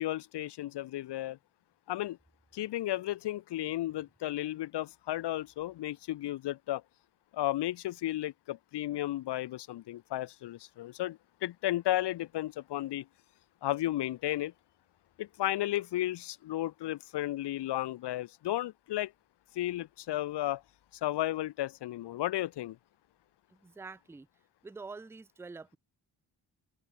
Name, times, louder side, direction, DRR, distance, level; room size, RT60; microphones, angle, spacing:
voice 1, 0.0-1.4 1.9-2.2 2.5-6.8 7.3-13.1 13.6-14.5 15.2-19.1 19.5-20.6 21.0-22.8, left 14 dB, 60° left, 0.5 m, -33 dB
sound 1, 4.9-24.1, left 9 dB, 85° left, 7.7 m, -78 dB
voice 2, 23.5-24.3 24.6-25.8, right 4 dB, 5° right, 0.4 m, -46 dB
open air
wide cardioid pair, 110°, 47 cm